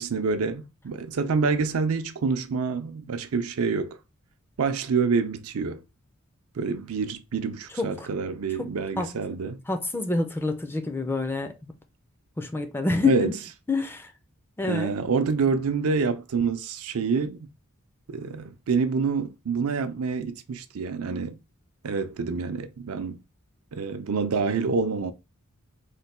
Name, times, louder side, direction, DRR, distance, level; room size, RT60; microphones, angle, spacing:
voice 1, 0.0-4.0 4.6-5.8 6.6-9.6 13.0-13.3 14.6-17.4 18.1-21.4 21.8-23.2 23.7-25.1, right 5 dB, 80° right, 0.5 m, -27 dB
voice 2, 7.8-8.1 8.6-8.7 9.0-9.2 9.7-11.7 12.4-13.3 13.7-14.1 14.6-14.9, left 3 dB, 10° left, 0.4 m, -27 dB
3.2 x 2.2 x 4.1 m
head